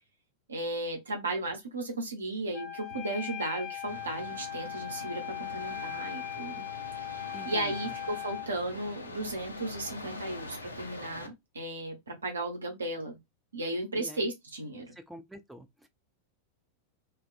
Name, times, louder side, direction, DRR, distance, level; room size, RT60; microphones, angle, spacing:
voice 1, 0.5-6.6 7.0-13.2 13.5-14.9, right 2 dB, 75° right, 0.7 m, -35 dB
Wind instrument woodwind instrument, 2.5-8.5, left 11 dB, 40° left, 0.6 m, -39 dB
sound 1, 3.9-11.3, left 2 dB, 80° left, 0.5 m, -44 dB
voice 2, 7.3-7.8 14.0-14.3 14.9-15.9, equal, 5° right, 0.3 m, -47 dB
2.3 x 2.2 x 2.5 m
figure-of-eight pair, 90°, 0 cm